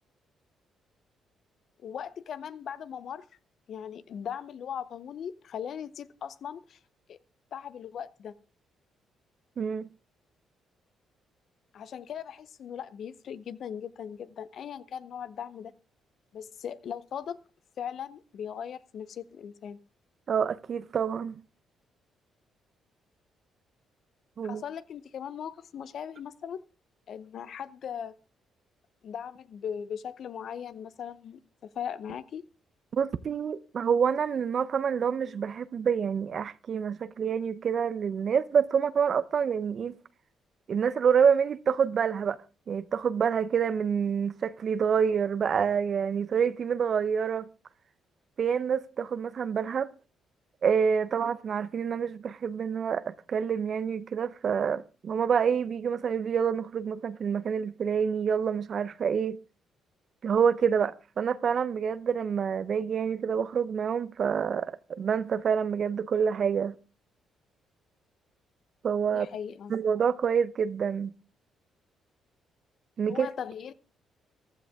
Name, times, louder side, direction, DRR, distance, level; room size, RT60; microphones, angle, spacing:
voice 1, 1.8-3.2 3.7-6.8 7.1-7.2 7.5-8.3 11.7-15.7 16.3-17.4 17.8-19.8 24.4-26.6 27.1-28.1 29.0-31.4 31.7-32.5 69.1-69.7 73.1-73.7, left 8 dB, 65° left, 0.7 m, -39 dB
voice 2, 9.6-9.9 20.3-21.3 24.4-24.6 32.9-40.0 40.7-42.4 42.7-47.5 48.4-49.9 50.6-59.4 60.2-66.7 68.8-69.3 69.7-71.1 73.0-73.3, right 7 dB, 55° right, 0.7 m, -27 dB
15.0 x 12.5 x 3.6 m
cardioid pair, 90°, 0 cm